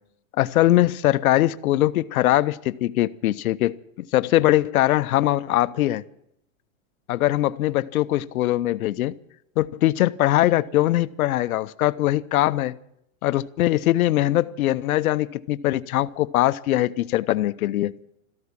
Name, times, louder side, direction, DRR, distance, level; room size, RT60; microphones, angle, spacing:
voice 1, 0.4-6.0 7.1-9.1 9.6-12.8 13.2-17.9, left 15 dB, 80° left, 0.7 m, -21 dB
13.5 x 13.0 x 7.4 m
supercardioid pair, 175°, 42 cm